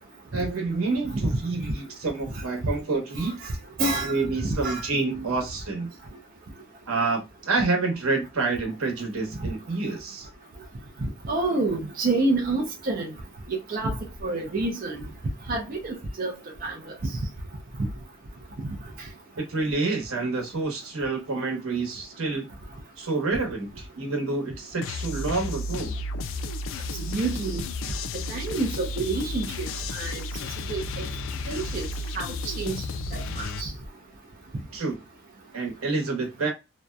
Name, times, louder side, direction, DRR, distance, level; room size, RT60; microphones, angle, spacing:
voice 1, 0.3-3.5 4.0-5.9 6.9-10.3 19.4-22.5 23.0-25.9 34.7-35.0 35.5-36.5, right 3 dB, 85° right, 0.9 m, -28 dB
voice 2, 3.8-4.2 4.6-4.8 11.0-13.1 13.5-13.9 14.2-15.0 15.5-16.3 16.6-17.1 17.8-17.9 27.1-27.7 28.1-29.7 29.9-30.2 30.7-31.1 31.5-31.9 32.2-32.7 33.1-33.7, right 2 dB, 40° right, 0.4 m, -28 dB
sound 1, 24.8-33.6, left 2 dB, 70° left, 0.3 m, -33 dB
2.6 x 2.1 x 2.2 m
head